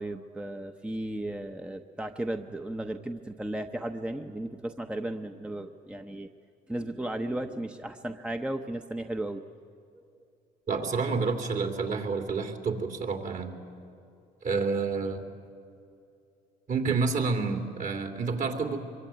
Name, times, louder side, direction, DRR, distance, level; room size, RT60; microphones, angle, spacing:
voice 1, 0.0-6.3 6.7-9.4 9.9-10.0, right 1 dB, 5° right, 6 dB, 0.9 m, -35 dB
voice 2, 10.7-13.5 14.4-15.3 16.7-18.8, right 4 dB, 50° right, 4 dB, 3.1 m, -29 dB
24.5 x 23.5 x 9.2 m, 2.5 s
cardioid pair, 110°, 17 cm